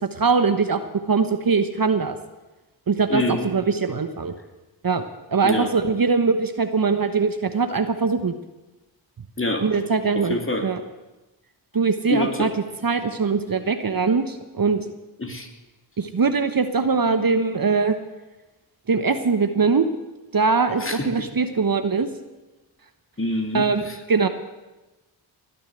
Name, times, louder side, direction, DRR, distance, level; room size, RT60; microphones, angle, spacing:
voice 1, 0.0-0.8 1.1-2.2 2.9-4.3 4.8-5.0 5.3-8.4 9.6-10.8 11.7-12.5 12.8-14.8 16.0-18.0 18.9-19.9 20.3-22.1 23.5-24.3, right 4 dB, 45° right, 9 dB, 1.2 m, -22 dB
voice 2, 3.1-3.5 5.4-5.7 9.4-9.6 10.3-10.6 12.1-12.5 15.2-15.5 20.8-21.0 23.2-23.6, left 2 dB, 25° left, 4 dB, 2.7 m, -25 dB
20.0 x 6.8 x 9.1 m, 1.1 s
cardioid pair, 40°, 49 cm